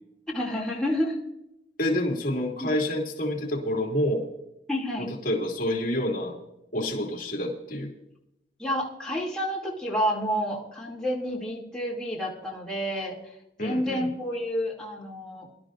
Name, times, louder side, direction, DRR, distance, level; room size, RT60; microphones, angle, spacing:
voice 1, 0.3-1.2 2.6-2.7 4.7-5.1 8.6-15.5, equal, 5° left, -5 dB, 2.7 m, -29 dB
voice 2, 1.8-4.3 5.0-6.3 6.7-7.9 13.6-14.1, left 1 dB, 50° left, 0 dB, 2.6 m, -28 dB
23.0 x 12.0 x 2.6 m, 0.84 s
head